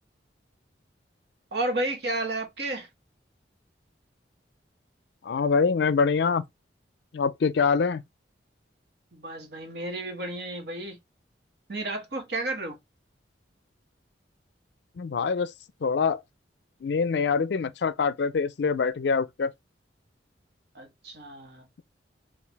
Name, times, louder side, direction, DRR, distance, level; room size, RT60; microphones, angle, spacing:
voice 1, 1.5-2.9 9.1-11.0 11.7-12.8 20.7-21.6, right 2 dB, 60° right, 1.3 m, -32 dB
voice 2, 5.2-6.4 7.1-8.0 15.0-15.5 15.8-16.2 16.8-19.5, left 5 dB, 70° left, 0.4 m, -24 dB
4.6 x 2.5 x 3.3 m
head